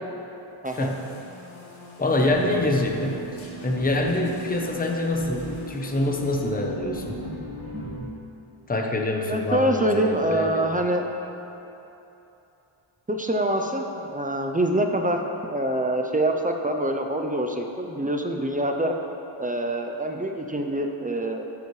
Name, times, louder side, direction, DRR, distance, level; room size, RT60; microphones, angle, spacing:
sound 1, 0.6-6.5, left 3 dB, 70° left, 1.7 m, -46 dB
voice 1, 0.6-1.0 9.3-11.0 13.1-19.0 19.4-21.4, right 1 dB, 15° right, 3 dB, 0.5 m, -25 dB
voice 2, 2.0-3.2 3.6-7.1 8.7-10.7, left 2 dB, 20° left, 1 dB, 0.8 m, -25 dB
sound 2, 2.3-7.9, equal, 35° right, 2.1 m, -38 dB
13.5 x 7.2 x 3.2 m, 3.0 s
wide cardioid pair, 115°, 48 cm